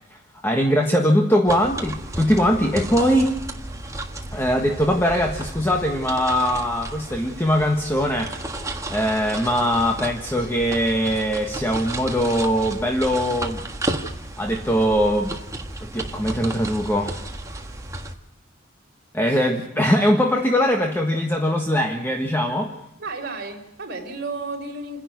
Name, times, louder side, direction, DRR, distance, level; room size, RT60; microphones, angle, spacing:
voice 1, 0.4-3.3 4.3-8.3 8.9-13.6 14.4-15.4 15.8-17.2 19.1-22.7, equal, 10° left, 3 dB, 1.4 m, -21 dB
sound 1, 1.5-18.1, right 1 dB, 15° right, 1.5 m, -33 dB
voice 2, 19.2-19.6 23.0-25.0, right 3 dB, 50° right, 1 dB, 4.5 m, -33 dB
28.5 x 11.0 x 9.5 m, 0.86 s
head